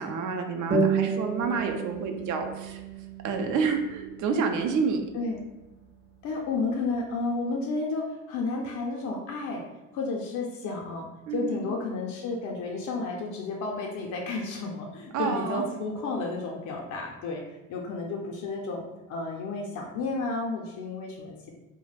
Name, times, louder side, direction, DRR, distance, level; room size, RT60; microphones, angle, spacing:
voice 1, 0.0-2.8 3.2-5.0 11.3-11.7 15.1-15.7, right 5 dB, 75° right, 5 dB, 0.5 m, -29 dB
sound 1, 0.7-5.7, right 5 dB, 35° right, 0.6 m, -31 dB
voice 2, 6.2-9.6 9.9-11.1 11.3-18.8 19.1-21.5, left 3 dB, 75° left, -1 dB, 0.5 m, -32 dB
2.3 x 2.1 x 3.2 m, 1.0 s
cardioid pair, 90°, 30 cm